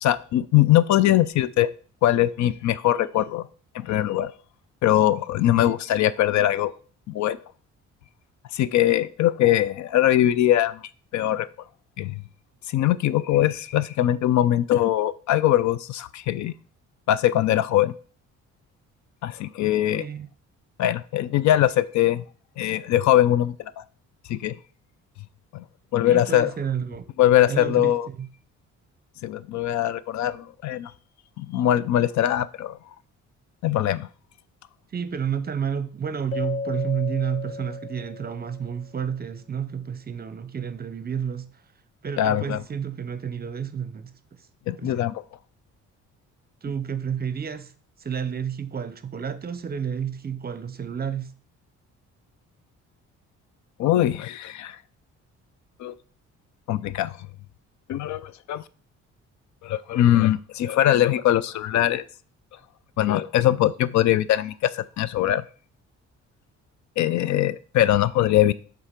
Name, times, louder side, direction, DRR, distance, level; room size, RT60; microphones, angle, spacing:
voice 1, 0.0-1.7 2.0-3.5 3.7-4.3 4.8-6.7 7.1-7.4 8.5-10.8 11.1-11.5 12.0-12.2 12.7-16.5 17.1-17.9 19.2-20.0 20.8-22.2 22.6-23.8 24.3-24.6 25.5-25.6 25.9-26.5 27.2-28.1 29.2-30.9 31.4-32.8 33.6-34.1 42.2-42.6 44.7-45.1 53.8-54.8 55.8-55.9 56.7-57.2 57.9-58.6 59.6-62.0 63.0-65.4 67.0-68.5, left 12 dB, 70° left, 0.5 m, -21 dB
voice 2, 19.9-20.3 26.0-27.1 27.5-28.3 34.9-41.6 42.0-44.5 44.8-45.0 46.6-47.7 48.0-51.4, right 7 dB, 30° right, 0.7 m, -30 dB
Keyboard (musical), 36.3-38.8, left 4 dB, 50° left, 1.0 m, -34 dB
7.2 x 3.8 x 5.1 m
cardioid pair, 90°, 30 cm